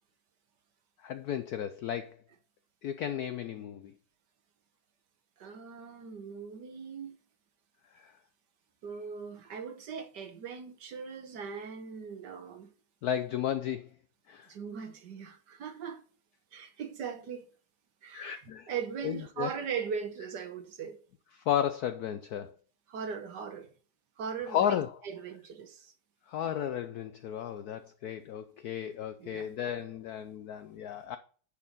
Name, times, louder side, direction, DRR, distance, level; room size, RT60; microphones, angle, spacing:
voice 1, 1.0-2.2 2.8-3.9 8.0-8.1 13.0-13.9 14.3-14.5 18.1-18.7 19.0-19.5 21.5-22.5 24.5-24.9 26.3-31.2, left 10 dB, 75° left, 0.8 m, -33 dB
voice 2, 5.4-7.2 8.8-12.7 14.5-16.0 16.5-17.4 18.0-18.4 18.7-21.0 22.9-23.7 24.2-24.8 25.0-25.9 29.2-29.5, right 6 dB, 60° right, 1.6 m, -39 dB
9.6 x 4.5 x 5.3 m
omnidirectional pair, 2.2 m